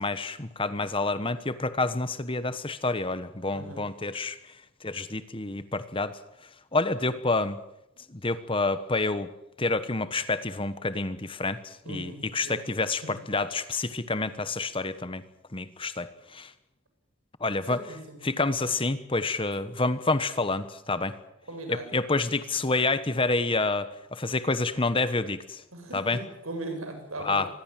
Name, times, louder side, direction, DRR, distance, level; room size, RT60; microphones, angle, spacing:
voice 1, 0.0-4.4 4.8-6.2 6.7-7.6 8.1-9.3 9.6-15.2 15.5-16.5 17.4-17.8 18.2-21.2 21.7-25.6 25.9-26.2 27.2-27.5, left 3 dB, 25° left, 12 dB, 1.1 m, -28 dB
voice 2, 3.5-3.9 11.8-12.7 17.7-18.2 21.4-21.9 25.7-27.4, right 2 dB, 75° right, 5 dB, 7.9 m, -39 dB
25.5 x 21.0 x 7.5 m, 0.84 s
head